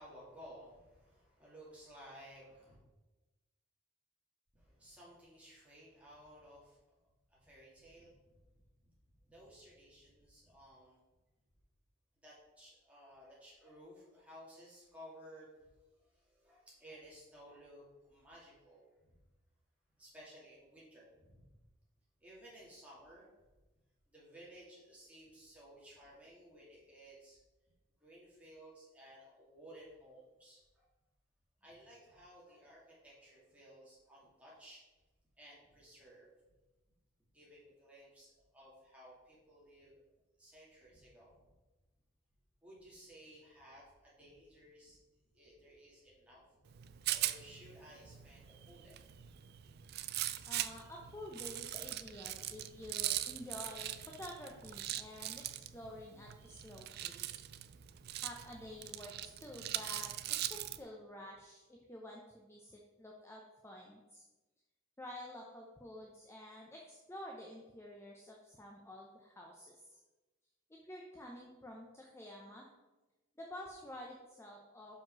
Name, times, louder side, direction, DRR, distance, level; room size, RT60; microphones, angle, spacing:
voice 1, 0.0-2.8 4.5-6.9 7.3-8.6 9.1-11.0 12.2-19.2 20.0-21.4 22.2-23.3 24.1-27.4 28.0-30.8 31.6-34.8 35.4-36.3 37.3-40.0 40.4-41.4 42.6-45.0 45.3-46.6 47.1-49.2, equal, 5° right, -7 dB, 2.6 m, -57 dB
Rattle, 46.7-60.8, right 13 dB, 50° right, 0.3 m, -41 dB
voice 2, 50.5-57.4 58.1-64.2 65.0-70.0 70.7-72.7 73.4-75.0, left 1 dB, 10° left, 0 dB, 0.7 m, -50 dB
5.9 x 5.3 x 6.0 m, 1.1 s
head